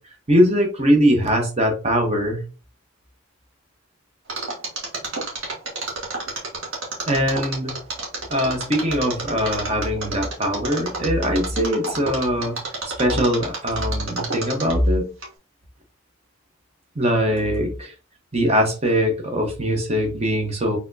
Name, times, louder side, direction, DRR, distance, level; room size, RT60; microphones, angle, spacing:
voice 1, 0.3-2.4 7.1-7.7 8.3-12.6 12.8-15.1 16.9-17.9 18.3-20.8, equal, 30° right, 0.9 m, -21 dB
Mechanisms, 4.3-14.9 15.2-15.3, right 3 dB, 75° right, 1.4 m, -29 dB
4.1 x 3.5 x 2.6 m
head